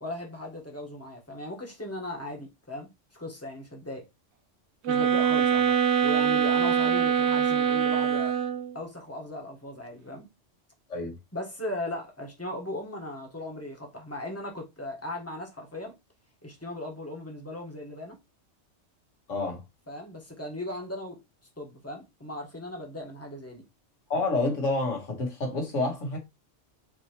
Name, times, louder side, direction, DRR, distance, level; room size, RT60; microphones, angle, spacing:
voice 1, 0.0-4.1 4.9-5.8 6.0-8.3 8.7-10.3 11.3-15.9 16.4-18.2 19.9-21.2 21.6-23.6, left 1 dB, 15° left, 1.2 m, -37 dB
sound 1, 4.8-8.7, right 8 dB, 70° right, 0.8 m, -24 dB
voice 2, 19.3-19.6 24.1-26.2, left 2 dB, 85° left, 1.7 m, -28 dB
5.3 x 2.9 x 2.9 m
omnidirectional pair, 1.2 m